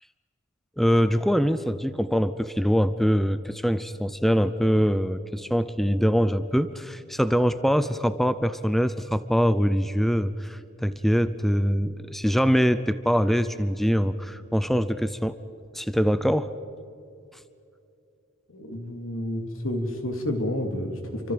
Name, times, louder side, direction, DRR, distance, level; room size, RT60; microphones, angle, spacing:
voice 1, 0.8-15.4 15.7-16.5, equal, ahead, 13 dB, 0.6 m, -23 dB
voice 2, 18.5-21.3, left 1 dB, 80° left, 4 dB, 3.2 m, -30 dB
29.0 x 25.0 x 5.2 m, 2.6 s
head